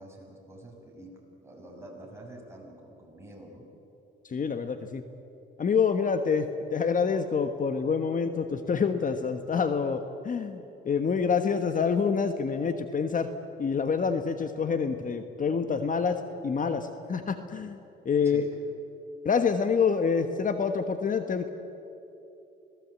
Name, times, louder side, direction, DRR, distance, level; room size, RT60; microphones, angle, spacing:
voice 1, 0.0-3.7 18.2-18.5, right 1 dB, 15° right, -1 dB, 7.0 m, -47 dB
voice 2, 4.2-5.0 5.6-13.3 13.6-18.4 19.2-21.5, left 6 dB, 40° left, 8 dB, 1.3 m, -27 dB
25.5 x 18.5 x 8.5 m, 3.0 s
cardioid pair, 90°, 20 cm